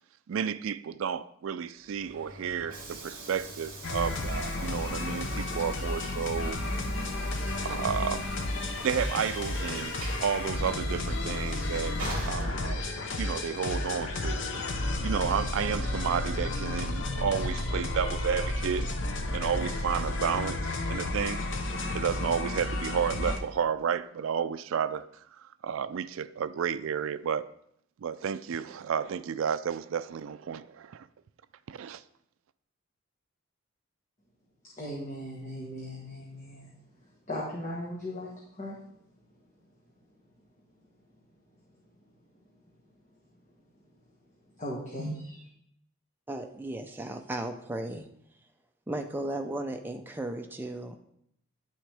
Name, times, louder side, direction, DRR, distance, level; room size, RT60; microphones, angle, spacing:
voice 1, 0.3-6.6 7.4-8.5 8.8-12.0 12.3-12.9 13.2-18.9 19.3-21.4 21.9-25.1 25.4-27.5 28.0-31.1 31.7-32.0, right 7 dB, 65° right, 0.3 m, -32 dB
Train / Sliding door, 1.8-13.2, right 1 dB, 40° right, 2.5 m, -44 dB
sound 1, 3.8-23.4, left 2 dB, 55° left, 0.7 m, -32 dB
voice 2, 34.8-36.7 37.3-38.8 44.6-45.4, equal, 35° left, 1.3 m, -37 dB
voice 3, 46.3-48.1 48.9-51.0, right 1 dB, 10° right, 0.5 m, -35 dB
9.8 x 6.3 x 3.4 m
head